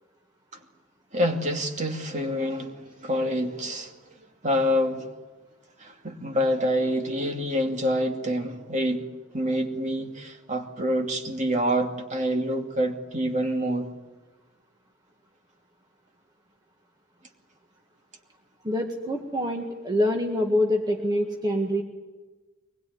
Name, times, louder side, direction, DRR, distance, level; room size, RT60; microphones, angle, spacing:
voice 1, 1.1-3.9 4.4-5.1 5.8-9.1 9.3-13.9, equal, 35° right, 2.6 m, -27 dB
voice 2, 18.6-21.8, left 1 dB, 20° right, 1.8 m, -25 dB
23.5 x 20.5 x 9.5 m
head